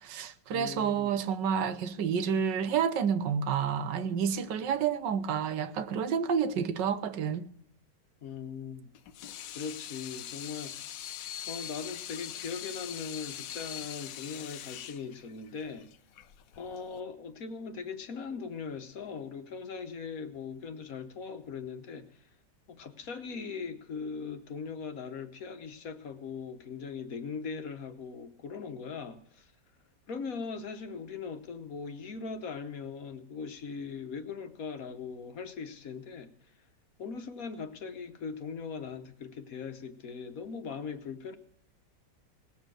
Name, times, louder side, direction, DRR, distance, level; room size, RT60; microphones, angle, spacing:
voice 1, 0.0-7.5, right 7 dB, 80° right, 1.5 m, -29 dB
voice 2, 0.5-1.2 8.2-8.9 9.5-11.0 11.5-15.9 16.6-22.2 22.7-29.5 30.1-36.3 37.0-41.4, left 5 dB, 55° left, 1.3 m, -40 dB
Water tap faucet / Sink (filling or washing), 8.9-17.0, left 10 dB, 85° left, 1.4 m, -42 dB
19.0 x 7.2 x 6.1 m
omnidirectional pair, 1.9 m